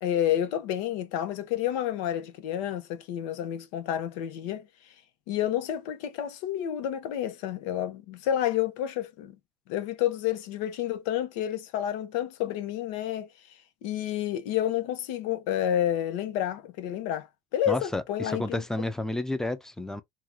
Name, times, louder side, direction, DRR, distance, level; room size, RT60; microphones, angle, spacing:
voice 1, 0.0-4.7 5.3-9.4 9.7-13.3 13.8-17.3 17.5-18.6, left 11 dB, 85° left, 0.9 m, -29 dB
voice 2, 17.7-20.0, left 2 dB, 5° left, 0.5 m, -31 dB
2.9 x 2.3 x 3.6 m
supercardioid pair, 110°, 15 cm